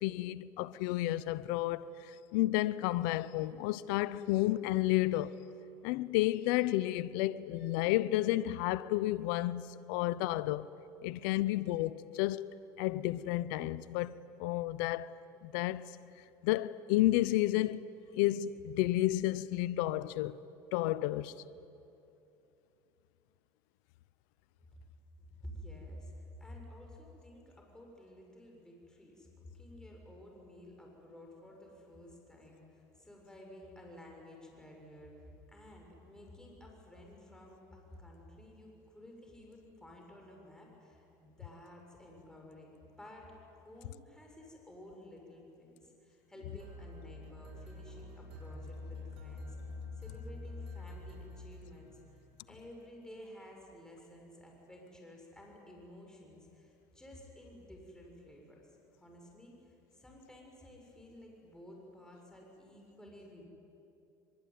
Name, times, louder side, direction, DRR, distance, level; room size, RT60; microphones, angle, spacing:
voice 1, 0.0-5.3 5.8-10.7 11.0-12.5 12.8-14.1 14.4-15.1 15.4-15.9 16.4-17.9 18.1-20.4 20.7-21.3, left 16 dB, 75° left, 0.8 m, -31 dB
voice 2, 25.2-49.6 50.0-51.9 52.5-58.7 59.0-59.7 59.9-63.5, left 1 dB, 5° left, 7.0 m, -53 dB
sound 1, 46.6-52.3, left 2 dB, 65° right, 8.0 m, -46 dB
23.5 x 23.5 x 9.5 m
supercardioid pair, 95°, 10 cm